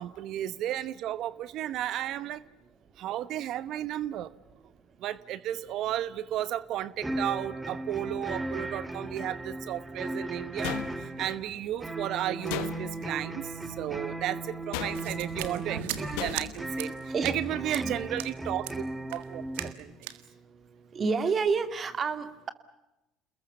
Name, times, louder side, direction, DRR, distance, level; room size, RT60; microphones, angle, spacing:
voice 1, 0.0-2.4 3.0-4.3 5.0-18.8 19.1-19.4 19.8-19.9, right 12 dB, 60° right, 16 dB, 0.9 m, -34 dB
sound 1, 7.0-19.7, right 1 dB, 15° right, 2.1 m, -36 dB
sound 2, 10.6-11.4 12.5-13.1 14.7-15.3 16.2-16.7, left 14 dB, 70° left, 1.2 m, -36 dB
sound 3, 14.9-16.5 16.8-16.9 17.2-17.4 17.7-17.8 18.2-18.3 18.6-18.8 19.1-19.2 19.5-19.8 20.0-20.2, right 13 dB, 75° right, 1.6 m, -38 dB
voice 2, 16.9-17.3 17.7-17.9 20.9-22.5, right 5 dB, 40° right, 9 dB, 2.5 m, -29 dB
29.5 x 21.0 x 6.9 m, 0.98 s
hypercardioid pair, 65°, 0 cm